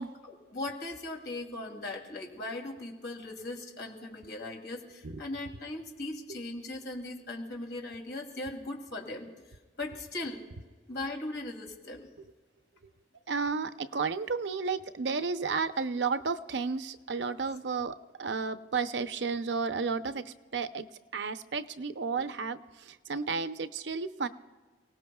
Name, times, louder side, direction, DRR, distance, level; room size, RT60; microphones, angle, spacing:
voice 1, 0.3-9.4 9.8-10.4 10.9-12.1, left 2 dB, 70° left, 1 dB, 2.9 m, -39 dB
voice 2, 13.3-20.9 21.1-24.3, right 4 dB, 85° right, 11 dB, 0.7 m, -32 dB
29.5 x 18.5 x 2.3 m, 1.4 s
head